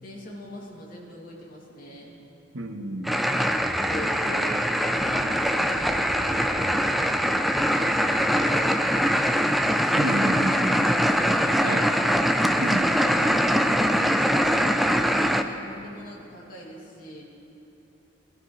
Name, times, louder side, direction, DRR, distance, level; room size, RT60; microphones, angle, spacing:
voice 1, 0.0-2.2 3.7-9.4 9.8-10.1 10.4-11.8 12.5-17.2, equal, 45° left, -4 dB, 2.5 m, -41 dB
voice 2, 2.5-3.2 9.9-10.8 11.6-11.9 12.6-12.9, right 1 dB, 80° right, 4 dB, 1.1 m, -29 dB
sound 1, 3.0-15.4, equal, ahead, 0.3 m, -23 dB
sound 2, 3.5-9.7, equal, 15° right, 0.9 m, -44 dB
20.5 x 12.0 x 3.2 m, 3.0 s
head